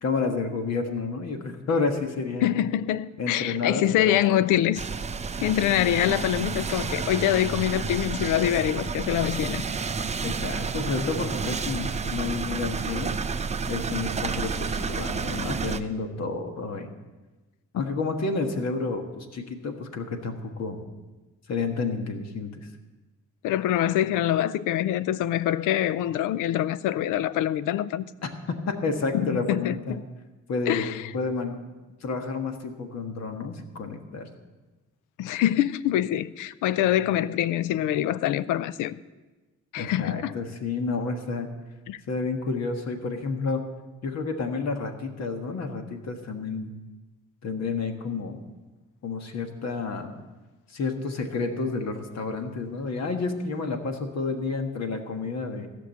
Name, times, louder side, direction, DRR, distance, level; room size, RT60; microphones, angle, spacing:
voice 1, 0.0-2.6 3.2-4.5 5.7-6.1 10.2-13.1 13.7-16.9 17.7-20.8 21.5-22.7 28.2-30.0 30.5-31.6 32.0-34.3 39.8-41.5 42.1-43.6 44.0-46.7 47.4-48.4 49.0-50.1 50.7-55.7, left 4 dB, 60° left, 1.5 m, -30 dB
voice 2, 2.4-4.8 5.4-9.6 23.4-28.0 29.1-30.0 30.7-31.1 35.2-38.9 39.7-40.4 41.9-42.0, left 12 dB, 90° left, 0.5 m, -25 dB
sound 1, 4.8-15.8, right 5 dB, 20° right, 0.6 m, -30 dB
15.5 x 6.1 x 7.1 m
cardioid pair, 90°, 30 cm